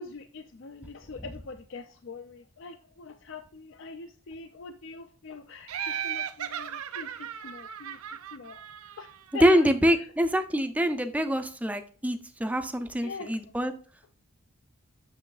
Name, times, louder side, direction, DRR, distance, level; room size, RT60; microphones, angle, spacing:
voice 1, 0.0-8.0 8.3-8.6 9.0-9.7 10.0-10.1 13.0-13.3, left 4 dB, 60° left, 7 dB, 0.4 m, -43 dB
Laughter, 5.7-9.3, right 9 dB, 85° right, 0.5 m, -36 dB
voice 2, 9.4-13.7, equal, 5° right, 8 dB, 0.4 m, -25 dB
7.5 x 6.2 x 2.4 m, 0.42 s
head